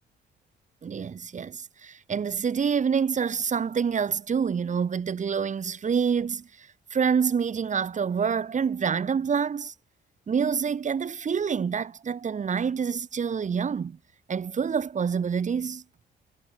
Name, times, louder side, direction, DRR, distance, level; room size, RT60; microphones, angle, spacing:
voice 1, 0.8-9.7 10.3-14.0 14.3-15.8, right 6 dB, 40° right, 1.2 m, -27 dB
cardioid pair, 90°, 20 cm